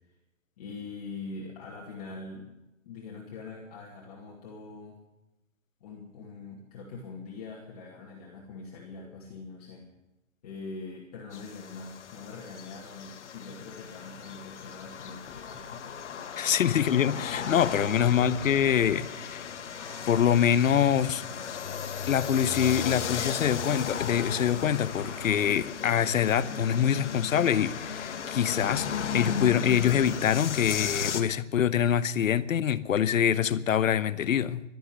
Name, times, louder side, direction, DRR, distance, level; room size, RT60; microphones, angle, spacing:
voice 1, 0.6-2.5 2.8-5.0 5.8-9.9 10.4-15.8 16.3-18.0, left 4 dB, 30° left, 2.5 m, -43 dB
sound 1, 11.3-31.2, left 7 dB, 60° left, 1.6 m, -36 dB
voice 2, 16.4-19.5 20.1-21.2 22.1-34.6, left 9 dB, 85° left, 1.0 m, -25 dB
sound 2, 19.8-25.5, left 3 dB, 5° left, 3.1 m, -50 dB
13.0 x 11.5 x 9.5 m
hypercardioid pair, 175°, 39 cm